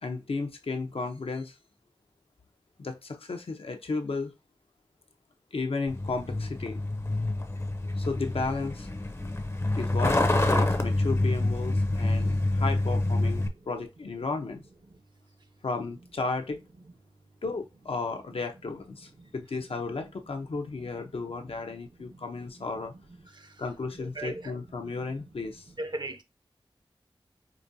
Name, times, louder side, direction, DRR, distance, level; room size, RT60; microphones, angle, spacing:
voice 1, 0.0-1.5 2.8-4.3 5.5-6.8 8.0-8.9 9.7-14.6 15.6-16.6 17.4-22.9 23.6-25.6, left 3 dB, 80° left, 0.7 m, -34 dB
Truck, 5.9-13.5, left 2 dB, 30° left, 0.6 m, -27 dB
voice 2, 24.0-24.5 24.8-25.3 25.8-26.2, right 2 dB, 50° right, 0.6 m, -39 dB
4.9 x 2.4 x 2.6 m
wide cardioid pair, 45°, 10 cm